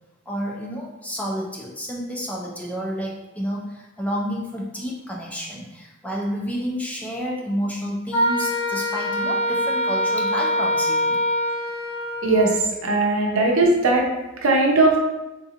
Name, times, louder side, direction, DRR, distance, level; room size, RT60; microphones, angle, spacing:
voice 1, 0.3-11.2 12.9-13.0, equal, 5° left, -3 dB, 0.4 m, -30 dB
Wind instrument woodwind instrument, 8.1-12.5, equal, 70° left, 1.3 m, -23 dB
voice 2, 12.8-14.1 14.4-15.0, right 2 dB, 80° right, 0 dB, 0.7 m, -18 dB
3.7 x 2.8 x 2.4 m, 1.0 s
head